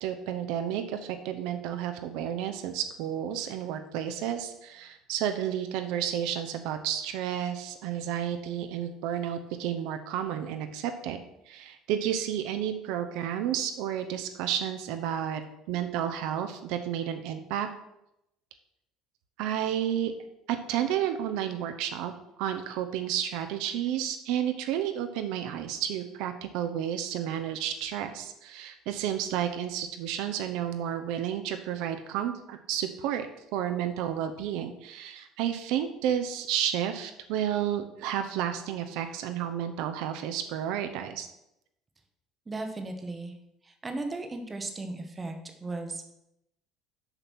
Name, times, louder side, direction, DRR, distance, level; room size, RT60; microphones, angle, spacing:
voice 1, 0.0-15.4 15.7-17.7 19.4-20.1 20.5-22.1 22.4-33.3 33.5-41.3, right 10 dB, 65° right, 7 dB, 0.7 m, -31 dB
voice 2, 42.5-43.3 43.6-46.1, right 2 dB, 15° right, 5 dB, 0.8 m, -36 dB
6.8 x 5.9 x 6.1 m, 0.85 s
cardioid pair, 180°, 0 cm